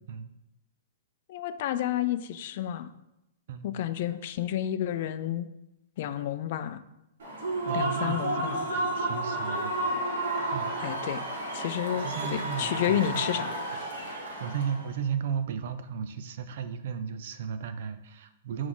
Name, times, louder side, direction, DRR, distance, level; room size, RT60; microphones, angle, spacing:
voice 1, 1.3-2.9 3.6-5.5 6.0-6.8 7.7-8.7 10.8-11.2 11.5-13.9, left 11 dB, 55° left, 11 dB, 0.4 m, -31 dB
voice 2, 3.5-3.8 7.6-9.8 10.5-10.7 11.9-13.4 14.2-18.7, right 7 dB, 60° right, 11 dB, 0.6 m, -35 dB
Human voice / Cheering / Applause, 7.2-14.9, right 1 dB, 80° right, 1.8 m, -31 dB
6.0 x 4.8 x 3.8 m, 0.87 s
hypercardioid pair, 150°, 0 cm